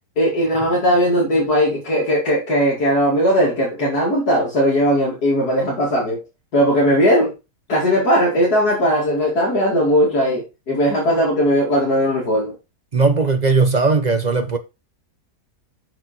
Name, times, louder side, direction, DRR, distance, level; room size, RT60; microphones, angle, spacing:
voice 1, 0.2-6.2 6.5-7.3 7.7-12.5, equal, 70° left, 2.9 m, -18 dB
voice 2, 12.9-14.6, right 4 dB, 40° right, 0.7 m, -17 dB
6.5 x 6.3 x 4.3 m
omnidirectional pair, 1.7 m